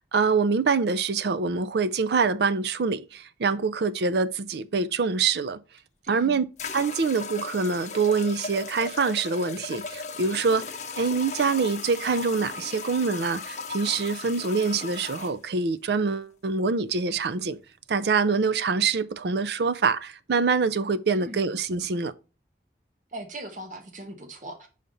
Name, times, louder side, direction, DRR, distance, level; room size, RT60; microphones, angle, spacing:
voice 1, 0.0-5.6 6.1-6.4 6.7-10.7 11.0-17.6 17.9-22.1, right 4 dB, 70° right, 0.5 m, -25 dB
sound 1, 5.8-5.9 6.6-15.3, left 4 dB, 40° left, 0.7 m, -37 dB
voice 2, 6.0-6.4 21.1-21.5 23.1-24.7, right 1 dB, 45° right, 1.0 m, -39 dB
5.6 x 5.0 x 3.9 m
head